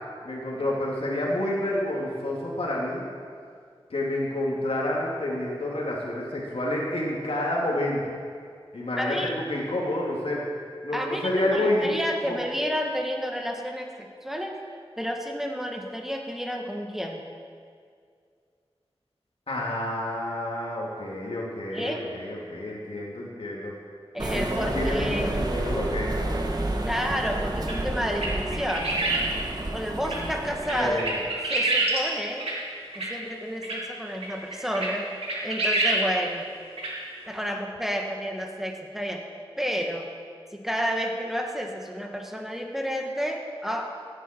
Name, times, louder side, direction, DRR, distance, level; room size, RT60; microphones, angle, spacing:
voice 1, 0.2-3.1 3.9-8.0 8.7-10.4 10.8-11.9 12.2-12.4 19.5-23.7 24.3-26.4 30.7-31.1, left 1 dB, 75° left, -4 dB, 2.9 m, -29 dB
voice 2, 9.0-9.3 10.9-14.6 15.0-17.2 21.7-22.0 24.1-25.3 26.8-29.0 29.7-31.0 31.5-32.5 32.9-35.0 35.4-36.5 37.3-39.2 39.6-40.1 40.5-43.9, equal, 5° right, 2 dB, 1.6 m, -30 dB
sound 1, 24.2-31.1, right 1 dB, 40° right, 1.6 m, -30 dB
sound 2, 27.7-27.8 28.1-29.3 30.0-30.2 30.6-32.0 32.4-32.5 32.9-33.1 33.6-33.8 34.2-34.3 34.5-34.9 35.2-36.0 36.3-36.4 36.8-36.9, right 2 dB, 80° right, 2.7 m, -26 dB
16.0 x 10.0 x 4.6 m, 2.1 s
cardioid pair, 45°, 10 cm